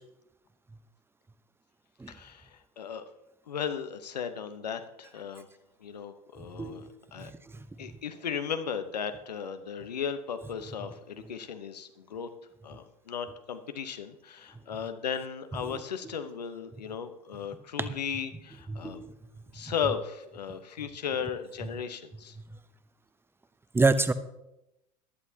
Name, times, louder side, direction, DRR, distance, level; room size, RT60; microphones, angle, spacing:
voice 1, 2.1-3.1 3.5-5.5 5.8-7.3 7.8-12.3 12.6-19.0 19.5-22.4, left 7 dB, 85° left, 9 dB, 1.0 m, -36 dB
voice 2, 6.6-6.9 7.2-7.3 18.7-19.1 23.7-24.1, right 3 dB, 10° right, 13 dB, 0.8 m, -26 dB
15.5 x 11.0 x 2.8 m, 0.88 s
hypercardioid pair, 80°, 20 cm